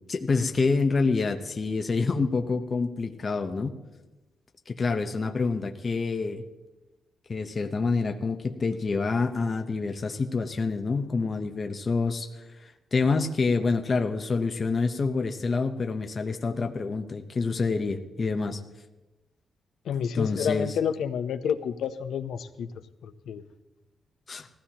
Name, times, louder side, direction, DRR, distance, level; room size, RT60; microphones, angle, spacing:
voice 1, 0.1-3.7 4.7-6.4 7.3-18.6 20.0-20.7 24.3-24.5, left 4 dB, 35° left, 6 dB, 0.7 m, -27 dB
voice 2, 19.8-22.7 23.0-23.4, left 8 dB, 90° left, 10 dB, 0.7 m, -29 dB
19.0 x 15.0 x 2.9 m, 1.1 s
wide cardioid pair, 160°, 0 cm